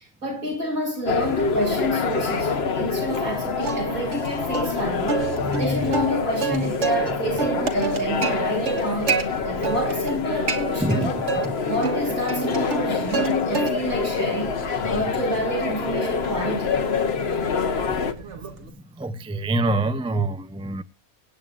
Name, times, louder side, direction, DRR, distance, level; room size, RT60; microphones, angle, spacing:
voice 1, 0.0-11.3 11.7-16.8, equal, 75° right, 7.2 m, -28 dB
sound 1, 1.1-18.1, left 5 dB, 50° left, 1.2 m, -26 dB
Plucked string instrument, 3.6-4.3 4.5-4.7 5.1-7.1 7.4-9.2 9.6-10.2 10.5-11.5 11.8-13.3 13.5-14.0 14.5-18.7, right 5 dB, 55° right, 1.9 m, -28 dB
voice 2, 5.4-5.8 6.5-6.7 10.8-11.6 17.0-17.4 18.2-18.4 19.0-20.8, right 2 dB, 10° right, 0.4 m, -26 dB
24.5 x 9.2 x 2.5 m
omnidirectional pair, 1.5 m